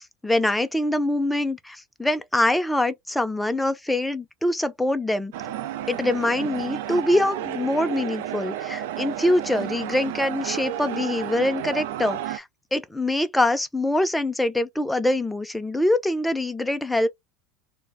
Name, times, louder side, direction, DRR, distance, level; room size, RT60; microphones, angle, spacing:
voice 1, 0.2-5.3 5.9-12.4 12.7-17.1, left 1 dB, 5° left, 0.3 m, -24 dB
sound 1, 5.3-12.4, right 11 dB, 85° right, 0.4 m, -32 dB
2.4 x 2.0 x 3.4 m
supercardioid pair, 150°, 0 cm